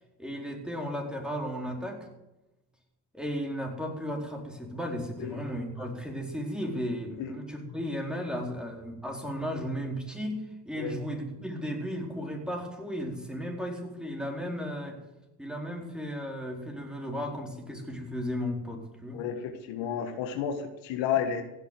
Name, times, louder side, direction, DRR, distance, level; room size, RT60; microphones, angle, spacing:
voice 1, 0.2-2.0 3.1-15.0 15.4-19.2, equal, ahead, 1 dB, 4.5 m, -35 dB
voice 2, 19.1-21.4, left 8 dB, 65° left, 7 dB, 1.7 m, -31 dB
16.5 x 8.4 x 7.7 m, 0.99 s
hypercardioid pair, 60°, 47 cm